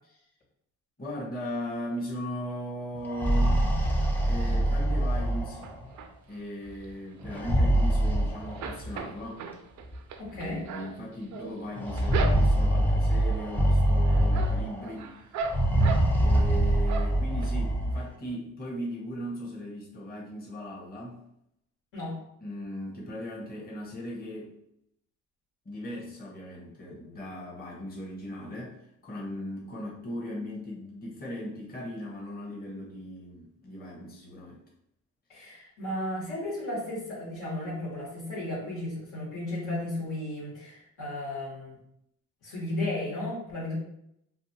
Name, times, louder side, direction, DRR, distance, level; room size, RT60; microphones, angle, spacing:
voice 1, 1.0-3.6 4.3-5.7 6.3-9.4 10.3-15.1 16.2-21.2 22.4-24.5 25.6-34.6, equal, 30° left, -3 dB, 0.8 m, -38 dB
sound 1, 3.0-5.9 7.2-8.9 9.9-10.0 10.4-10.5 11.8-14.9 15.4-18.0, right 1 dB, 5° left, 0.5 m, -24 dB
sound 2, 5.6-6.4 6.8-8.2 8.4-12.8 13.3-13.7 14.0-16.5 16.9-17.5 17.9-18.0 18.3-18.4, right 4 dB, 65° right, 0.4 m, -38 dB
voice 2, 10.2-10.6 21.9-22.1 35.3-41.8 42.4-43.7, left 1 dB, 85° left, -5 dB, 1.4 m, -34 dB
2.6 x 2.4 x 2.7 m, 0.75 s
cardioid pair, 90°, 30 cm